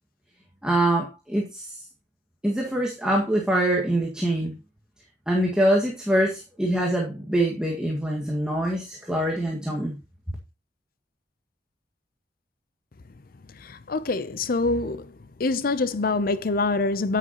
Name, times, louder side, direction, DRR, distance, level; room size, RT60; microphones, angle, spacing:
voice 1, 0.6-1.8 2.4-4.5 5.3-10.0, right 1 dB, 5° right, 1.8 m, -24 dB
voice 2, 13.9-15.0 15.4-17.2, left 3 dB, 55° left, 0.6 m, -25 dB
9.8 x 9.5 x 3.0 m
head